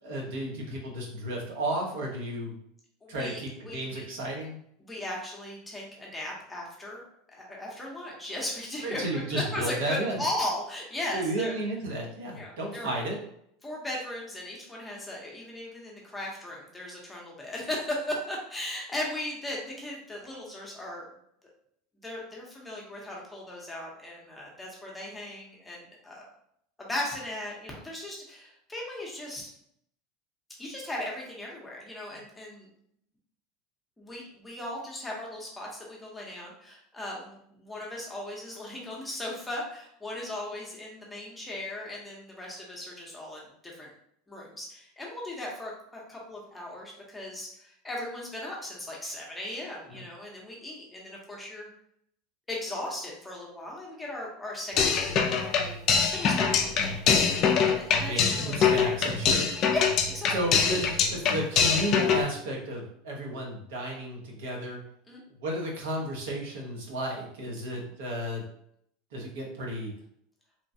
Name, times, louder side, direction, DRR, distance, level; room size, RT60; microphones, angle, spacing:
voice 1, 0.0-2.5 3.1-4.6 8.8-10.2 11.1-13.2 49.9-50.0 58.0-59.5 60.3-64.8 65.4-68.4 69.1-69.9, right 1 dB, 85° right, -2 dB, 0.9 m, -33 dB
voice 2, 3.0-4.1 4.8-7.0 7.3-11.6 12.3-12.9 13.6-21.1 22.0-26.2 26.8-29.5 30.6-32.7 34.0-43.9 44.3-51.7 52.5-55.8 56.1-57.3 57.6-58.6 59.7-59.9 60.1-60.3 65.1-65.2 67.7-67.9, left 1 dB, 10° left, -3 dB, 0.7 m, -37 dB
sound 1, 54.8-62.2, left 6 dB, 35° left, 0.3 m, -24 dB
3.1 x 2.2 x 2.6 m, 0.71 s
supercardioid pair, 150°, 0 cm